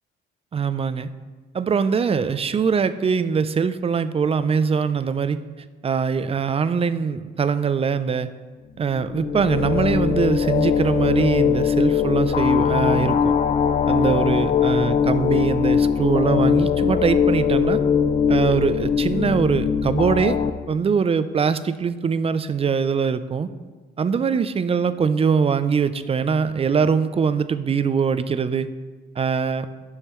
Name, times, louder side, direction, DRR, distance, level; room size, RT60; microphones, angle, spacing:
voice 1, 0.5-1.1 1.5-5.4 5.8-8.3 8.8-13.3 13.9-17.8 18.3-20.4 20.7-23.5 24.0-28.7 29.2-29.7, right 6 dB, 30° right, 12 dB, 0.4 m, -22 dB
sound 1, 8.9-20.5, left 7 dB, 35° left, 0.4 m, -21 dB
8.8 x 6.4 x 3.0 m, 1.4 s
cardioid pair, 90°, 20 cm